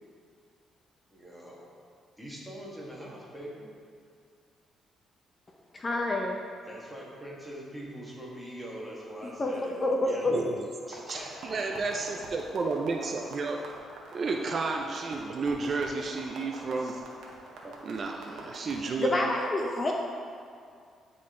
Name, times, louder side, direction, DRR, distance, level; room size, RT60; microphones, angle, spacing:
voice 1, 1.1-1.7 2.2-3.7 6.7-10.3 10.9-12.1 17.4-17.8, equal, ahead, -5 dB, 1.7 m, -43 dB
voice 2, 5.7-6.4 9.4-10.3 19.0-19.9, left 2 dB, 30° left, 1 dB, 0.6 m, -28 dB
voice 3, 10.3-10.7 11.1-11.2 11.5-13.6 14.1-17.0 17.8-19.3, right 3 dB, 45° right, 2 dB, 0.5 m, -31 dB
sound 1, 10.8-19.1, right 3 dB, 80° right, 1.0 m, -45 dB
9.6 x 3.8 x 3.7 m, 2.3 s
cardioid pair, 90°, 0 cm